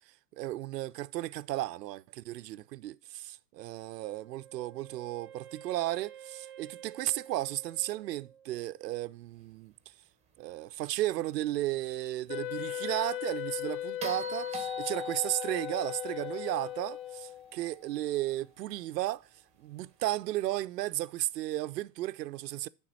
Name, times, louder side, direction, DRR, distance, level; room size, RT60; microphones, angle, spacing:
voice 1, 0.3-9.7 10.4-19.3 19.6-22.7, right 15 dB, 75° right, 0.6 m, -34 dB
Wind instrument woodwind instrument, 4.0-8.9, right 9 dB, 30° right, 0.6 m, -51 dB
Wind instrument woodwind instrument 2, 12.3-17.5, left 13 dB, 90° left, 0.6 m, -38 dB
sound 1, 14.0-18.3 20.5-20.6, left 1 dB, 15° right, 1.2 m, -42 dB
9.5 x 3.8 x 6.2 m
hypercardioid pair, 120°, 50 cm